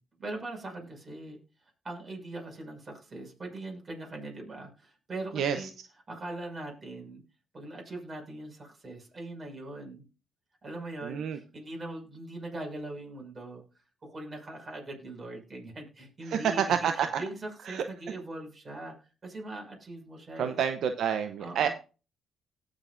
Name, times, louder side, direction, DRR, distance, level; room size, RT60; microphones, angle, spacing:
voice 1, 0.2-1.4 1.8-5.7 6.1-7.2 7.5-10.0 10.6-13.6 14.0-18.9 19.2-20.6 21.4-21.7, right 2 dB, 35° right, 2 dB, 6.0 m, -41 dB
voice 2, 5.3-5.7 11.0-11.4 16.3-17.2 17.7-17.8 20.4-21.7, right 8 dB, 70° right, 7 dB, 0.7 m, -28 dB
18.5 x 6.6 x 2.5 m, 0.33 s
cardioid pair, 90°, 0 cm